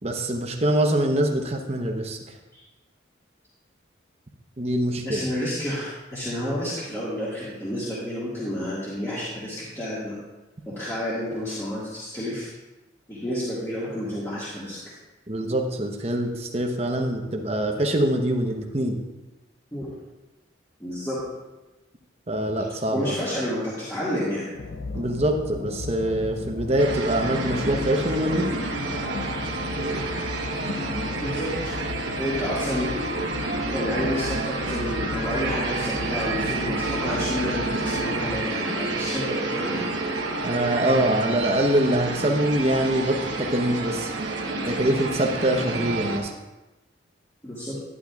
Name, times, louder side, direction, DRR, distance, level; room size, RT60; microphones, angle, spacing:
voice 1, 0.0-2.3 4.6-5.3 15.3-19.0 22.3-23.1 24.9-28.5 40.4-44.1 44.6-46.3, right 1 dB, 35° right, 3 dB, 0.9 m, -24 dB
voice 2, 5.0-10.1 10.7-12.5 13.1-14.8 19.7-19.9 20.8-21.2 22.9-24.5 31.2-31.7 32.2-32.9 33.7-39.9 47.4-47.7, equal, 15° left, -10 dB, 1.8 m, -30 dB
sound 1, 24.5-38.5, left 3 dB, 85° left, 0.5 m, -35 dB
sound 2, 26.8-46.2, right 2 dB, 65° right, 1.2 m, -29 dB
11.5 x 10.0 x 2.4 m, 1.1 s
head